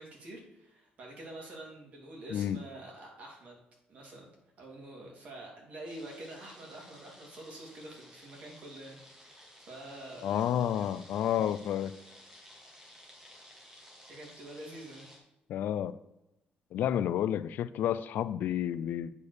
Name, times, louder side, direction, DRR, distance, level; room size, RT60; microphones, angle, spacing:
voice 1, 0.0-3.6 3.9-4.3 4.6-10.3 14.0-15.1, right 1 dB, 45° right, -1 dB, 2.9 m, -47 dB
sound 1, 5.9-15.2, equal, 15° right, 1.9 m, -55 dB
voice 2, 10.2-11.9 15.5-16.0 16.7-19.1, left 10 dB, 65° left, 14 dB, 0.4 m, -30 dB
8.4 x 4.5 x 6.7 m, 0.89 s
cardioid pair, 180°, 3 cm